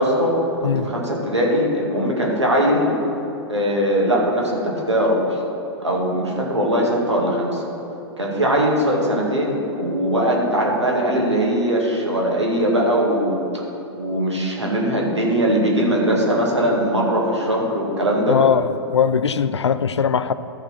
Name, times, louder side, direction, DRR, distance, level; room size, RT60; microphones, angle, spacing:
voice 1, 0.0-2.9 3.5-5.4 5.8-7.7 8.2-13.4 14.0-18.4, equal, 90° right, -3 dB, 2.0 m, -20 dB
voice 2, 18.3-18.7 18.9-20.3, left 7 dB, 80° left, 14 dB, 0.4 m, -19 dB
13.5 x 4.5 x 5.9 m, 3.0 s
figure-of-eight pair, 100°, 14 cm